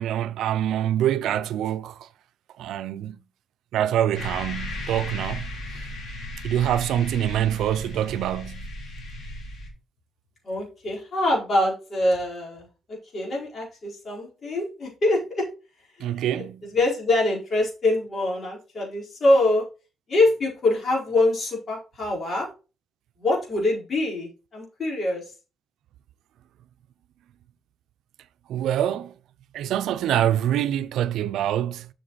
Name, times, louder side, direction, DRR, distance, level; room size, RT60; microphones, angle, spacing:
voice 1, 0.0-2.0 2.6-3.2 3.7-5.5 6.4-8.7 16.0-16.6 28.5-29.1 29.5-31.9, right 11 dB, 80° right, 0.5 m, -25 dB
sound 1, 4.1-9.7, left 1 dB, 60° left, 3.2 m, -35 dB
voice 2, 10.4-15.5 16.0-16.3 16.6-19.6 20.1-22.5 23.2-25.2, left 2 dB, 45° left, 4.6 m, -24 dB
7.5 x 6.4 x 4.1 m
cardioid pair, 90°, 0 cm